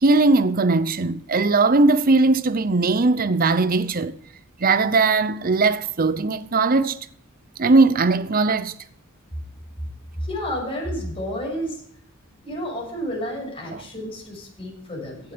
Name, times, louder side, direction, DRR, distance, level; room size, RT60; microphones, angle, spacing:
voice 1, 0.0-4.2 4.6-7.0 7.6-8.7 13.7-13.8, right 3 dB, 45° right, 0.7 m, -19 dB
voice 2, 10.2-11.8 12.4-15.3, equal, 25° left, 6.5 m, -30 dB
16.5 x 8.1 x 5.1 m
head